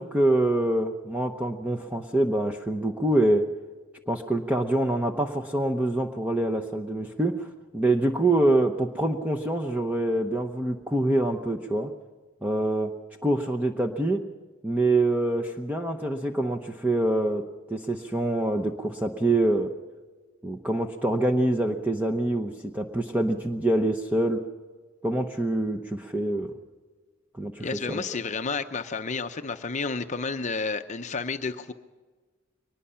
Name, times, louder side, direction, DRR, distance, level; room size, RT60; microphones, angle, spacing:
voice 1, 0.0-3.4 4.1-7.5 7.7-11.9 12.4-12.9 13.2-14.2 14.6-17.4 17.7-19.7 20.4-24.4 25.0-26.5 27.4-28.0, right 1 dB, 10° right, 3 dB, 0.8 m, -25 dB
voice 2, 27.6-31.7, left 4 dB, 35° left, 7 dB, 0.6 m, -31 dB
23.0 x 20.0 x 5.7 m, 1.4 s
head